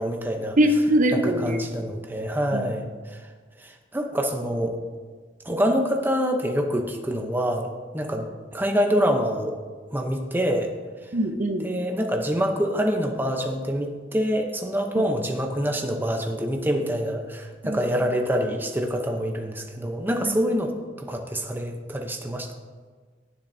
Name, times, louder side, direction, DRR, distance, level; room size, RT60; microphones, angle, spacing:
voice 1, 0.0-0.6 1.2-3.3 3.6-4.7 5.4-8.3 8.5-9.6 9.9-10.7 11.6-22.5, equal, 10° right, 3 dB, 0.7 m, -26 dB
voice 2, 0.6-1.6 2.5-2.7 11.1-11.7 15.0-15.1 17.6-17.8 20.2-20.4, right 1 dB, 45° right, 5 dB, 0.7 m, -22 dB
17.5 x 7.3 x 2.7 m, 1.5 s
head